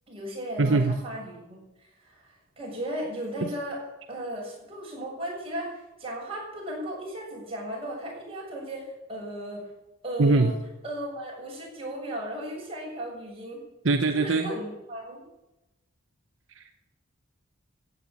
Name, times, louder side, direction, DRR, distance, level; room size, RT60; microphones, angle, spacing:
voice 1, 0.1-3.8 4.1-9.7 10.0-10.5 10.8-13.6 14.1-15.2, right 1 dB, 25° right, -3 dB, 7.2 m, -36 dB
voice 2, 0.6-1.0 10.2-10.5 13.8-14.5 16.6-16.7, right 3 dB, 65° right, 6 dB, 0.9 m, -22 dB
15.5 x 8.2 x 8.8 m, 0.95 s
head